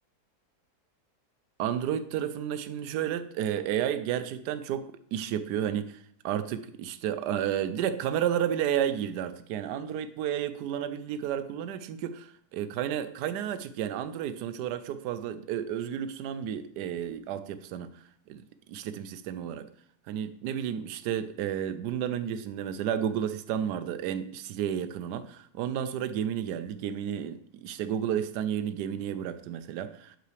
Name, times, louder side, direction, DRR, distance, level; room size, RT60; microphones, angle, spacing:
voice 1, 1.6-17.9 18.3-18.4 18.7-19.7 20.1-30.2, right 9 dB, 85° right, 1.2 m, -32 dB
11.5 x 5.5 x 3.3 m
omnidirectional pair, 1.7 m